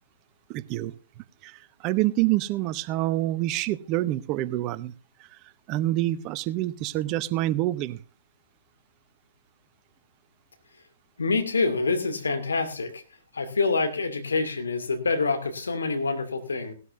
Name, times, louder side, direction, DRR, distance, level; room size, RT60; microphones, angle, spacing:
voice 1, 0.5-0.9 1.4-1.5 1.8-4.9 5.7-8.0, right 16 dB, 35° right, 17 dB, 0.7 m, -26 dB
voice 2, 11.2-13.0 13.3-16.7, left 3 dB, 80° left, 8 dB, 2.3 m, -26 dB
18.0 x 12.5 x 2.6 m, 0.35 s
figure-of-eight pair, 120°, 0 cm